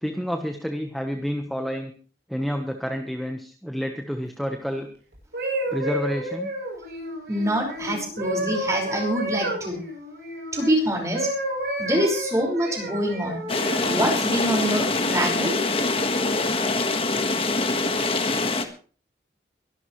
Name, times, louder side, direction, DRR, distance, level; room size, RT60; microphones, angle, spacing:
voice 1, 0.0-1.9 2.3-4.9 5.7-6.5, equal, ahead, 4 dB, 1.2 m, -29 dB
sound 1, 5.1-10.7 11.1-14.0 14.7-14.9, right 1 dB, 65° right, 7.8 m, -31 dB
voice 2, 7.3-9.8 10.5-11.3 11.8-13.4 13.8-15.6, right 1 dB, 20° right, 1 dB, 5.3 m, -25 dB
sound 2, 13.5-18.6, left 3 dB, 30° left, 1.5 m, -24 dB
23.0 x 12.0 x 3.2 m, 0.39 s
head